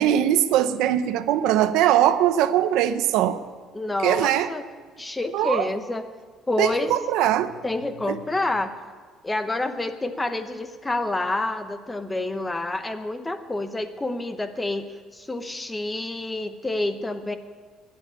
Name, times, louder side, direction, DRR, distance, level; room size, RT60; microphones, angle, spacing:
voice 1, 0.0-3.4 4.0-4.5 5.3-5.7 6.6-7.5 8.1-8.2, right 11 dB, 80° right, 12 dB, 0.8 m, -21 dB
voice 2, 3.7-4.6 5.0-6.0 6.5-6.9 7.6-8.7 9.2-14.9 15.1-17.4, left 2 dB, 10° left, 9 dB, 0.8 m, -28 dB
12.5 x 10.0 x 9.8 m, 1.5 s
cardioid pair, 170°, 0 cm